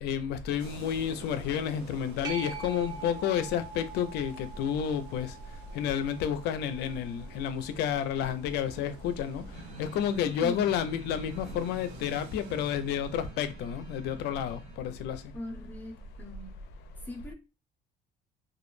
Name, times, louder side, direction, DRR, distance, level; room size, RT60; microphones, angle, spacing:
voice 1, 0.0-5.3 5.7-9.4 9.8-15.2, left 8 dB, 80° left, 0.4 m, -30 dB
sound 1, 0.6-13.3, right 5 dB, 90° right, 0.6 m, -51 dB
sound 2, 2.2-9.4 14.9-15.0, right 5 dB, 25° right, 1.0 m, -45 dB
sound 3, 9.5-14.8, right 2 dB, 40° right, 0.7 m, -47 dB
voice 2, 15.3-16.5 17.1-17.3, left 1 dB, 10° left, 0.7 m, -40 dB
2.2 x 2.0 x 3.0 m
cardioid pair, 110°, 17 cm